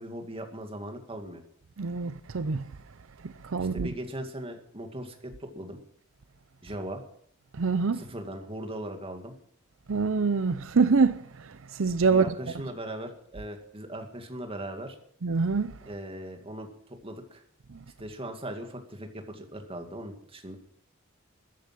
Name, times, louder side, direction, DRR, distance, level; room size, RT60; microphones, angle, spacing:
voice 1, 0.0-1.4 3.6-5.8 6.6-7.0 7.9-9.3 12.1-15.0 15.8-16.7 17.0-17.4 18.0-20.6, right 1 dB, 30° right, 2.3 m, -39 dB
voice 2, 1.8-2.7 3.2-3.9 7.5-8.0 9.9-12.3 15.2-15.8 17.7-17.8, right 4 dB, 75° right, 0.6 m, -25 dB
14.0 x 10.5 x 7.6 m
head